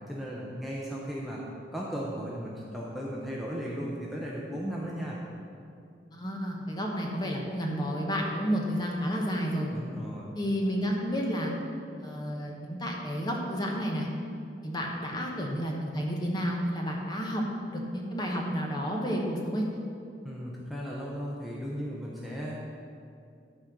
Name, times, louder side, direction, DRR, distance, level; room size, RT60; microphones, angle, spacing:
voice 1, 0.1-1.4 1.7-5.2 9.7-10.2 20.2-22.6, equal, ahead, -5 dB, 0.8 m, -36 dB
voice 2, 6.1-9.7 10.3-11.5 12.0-14.1 14.6-17.4 17.7-19.8, equal, 20° left, -1 dB, 1.2 m, -31 dB
12.5 x 4.3 x 6.3 m, 2.5 s
head